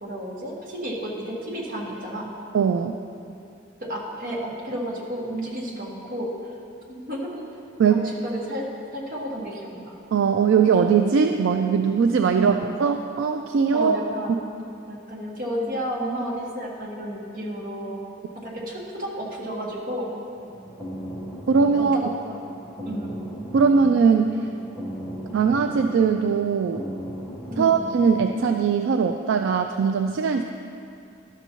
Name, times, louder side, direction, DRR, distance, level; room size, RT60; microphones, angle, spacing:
voice 1, 0.0-2.3 3.8-6.3 6.9-7.4 7.9-8.7 8.9-10.0 12.3-12.6 13.7-14.3 14.9-18.0 18.3-20.1 21.7-22.4 22.8-23.1 27.5-27.7, right 1 dB, 45° right, -4 dB, 1.5 m, -32 dB
voice 2, 2.5-3.0 7.8-8.1 10.1-14.0 21.5-22.0 23.5-24.4 25.3-26.8 27.6-30.4, right 6 dB, 70° right, 5 dB, 0.3 m, -20 dB
sound 1, 20.3-28.2, equal, ahead, 1.2 m, -37 dB
12.0 x 6.9 x 3.0 m, 2.6 s
head